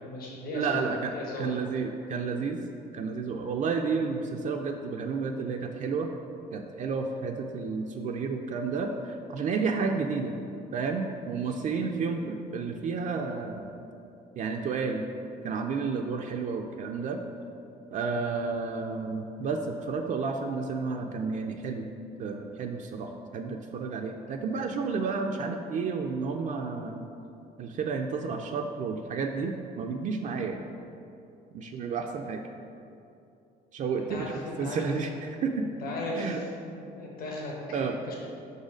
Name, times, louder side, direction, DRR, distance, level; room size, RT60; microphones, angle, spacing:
voice 1, 0.0-0.8 1.1-1.5 34.1-34.9 35.8-37.8 38.1-38.2, left 2 dB, 60° left, -3 dB, 1.3 m, -37 dB
voice 2, 0.5-2.6 2.9-6.1 6.5-10.4 10.7-13.7 14.3-15.0 15.4-17.2 17.9-21.9 22.2-27.1 27.6-30.7 31.5-32.4 33.7-34.3 34.6-35.7 36.1-36.4 37.7-38.0, right 4 dB, 45° right, 3 dB, 0.4 m, -31 dB
5.6 x 4.0 x 5.0 m, 2.7 s
cardioid pair, 110°, 17 cm